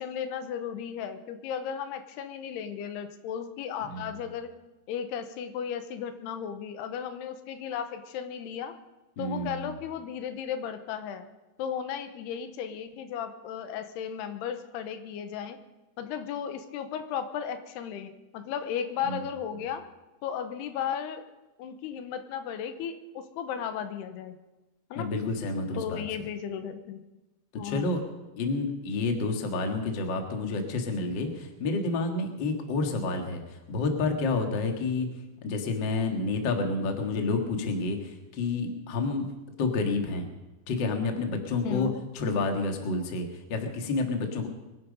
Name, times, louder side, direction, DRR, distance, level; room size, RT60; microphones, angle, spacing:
voice 1, 0.0-4.5 4.9-8.8 9.2-11.3 11.6-15.6 16.0-19.8 20.2-21.3 21.6-24.4 24.9-25.1 25.7-27.0 27.5-28.0 41.6-42.0, left 8 dB, 80° left, 9 dB, 3.0 m, -35 dB
voice 2, 9.2-9.7 19.0-19.2 24.9-26.0 27.6-28.0 28.4-33.4 33.7-35.1 35.4-39.3 39.6-40.3 40.7-41.9 42.1-44.5, left 3 dB, 45° left, 4 dB, 1.6 m, -29 dB
23.0 x 11.0 x 5.3 m, 1.1 s
omnidirectional pair, 4.7 m